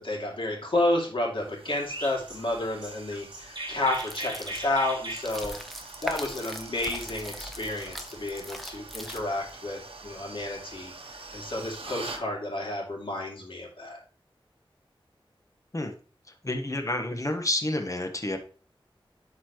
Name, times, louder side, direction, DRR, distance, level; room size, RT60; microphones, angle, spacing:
voice 1, 0.0-5.6 6.0-14.0, left 2 dB, 60° left, -1 dB, 2.6 m, -31 dB
sound 1, 1.4-12.3, right 3 dB, 85° right, 0.9 m, -45 dB
Chirp tweet, 1.9-7.0, right 1 dB, 50° right, 1.9 m, -39 dB
sound 2, 3.9-9.5, equal, ahead, 1.0 m, -41 dB
voice 2, 16.4-18.4, left 1 dB, 35° left, 6 dB, 1.3 m, -29 dB
11.5 x 4.3 x 3.1 m, 0.38 s
wide cardioid pair, 65°, 9 cm